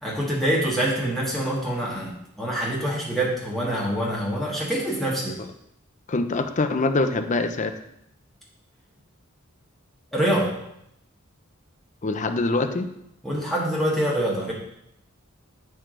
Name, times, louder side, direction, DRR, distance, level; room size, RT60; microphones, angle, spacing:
voice 1, 0.0-5.3 10.1-10.5 13.2-14.5, right 1 dB, ahead, -5 dB, 1.4 m, -25 dB
voice 2, 6.1-7.7 12.0-12.9, left 3 dB, 35° left, 8 dB, 0.6 m, -24 dB
9.5 x 4.7 x 3.8 m, 0.78 s
head